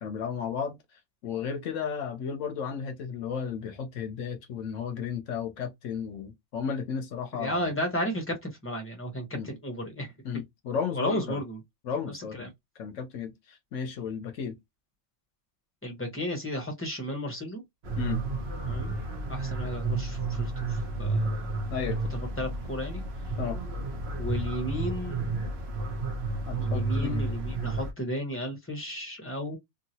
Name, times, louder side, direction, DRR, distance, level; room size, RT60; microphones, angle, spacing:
voice 1, 0.0-7.7 9.3-9.5 10.2-11.4 11.8-12.5 12.8-14.6 18.0-18.2 21.7-22.0 23.4-23.6 26.5-27.2, left 6 dB, 70° left, 0.9 m, -34 dB
voice 2, 7.3-10.1 10.9-11.6 12.1-12.5 15.8-17.6 18.7-18.9 19.3-21.6 22.1-23.0 24.2-25.5 26.6-29.6, equal, 10° left, 0.7 m, -34 dB
sound 1, 17.8-27.9, right 2 dB, 50° right, 1.0 m, -31 dB
2.8 x 2.7 x 2.7 m
omnidirectional pair, 1.5 m